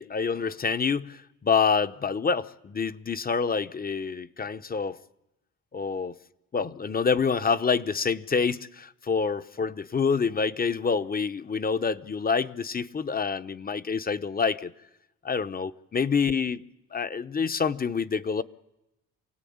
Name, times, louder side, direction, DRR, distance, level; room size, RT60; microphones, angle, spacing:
voice 1, 0.0-5.0 5.7-6.1 6.5-14.7 15.2-16.6 16.9-18.4, left 5 dB, 30° left, 1.0 m, -27 dB
28.0 x 18.0 x 8.8 m
cardioid pair, 90°, 30 cm